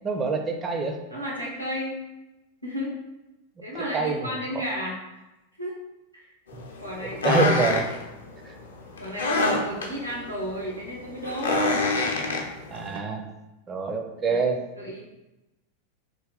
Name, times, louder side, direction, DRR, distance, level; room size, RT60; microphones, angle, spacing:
voice 1, 0.0-1.0 3.9-4.3 7.0-7.9 8.5-8.6 12.7-13.2 13.7-14.6, right 4 dB, 25° right, 4 dB, 0.5 m, -26 dB
voice 2, 1.1-2.0 2.6-2.9 3.6-5.0 5.6-5.7 6.1-6.3 6.8-7.4 9.0-11.8 14.3-14.5 14.8-15.0, equal, 85° right, -4 dB, 1.1 m, -33 dB
sound 1, 6.5-13.0, left 2 dB, 70° left, 0.5 m, -27 dB
3.2 x 2.8 x 3.7 m, 1.0 s
figure-of-eight pair, 90°, 0 cm